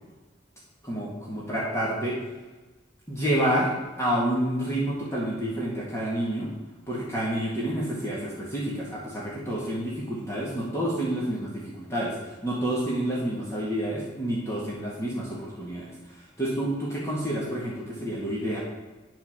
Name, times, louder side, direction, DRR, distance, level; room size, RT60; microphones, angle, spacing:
voice 1, 0.8-2.2 3.1-6.5 6.9-18.6, right 1 dB, 15° left, -6 dB, 1.9 m, -29 dB
9.0 x 5.8 x 7.3 m, 1.2 s
head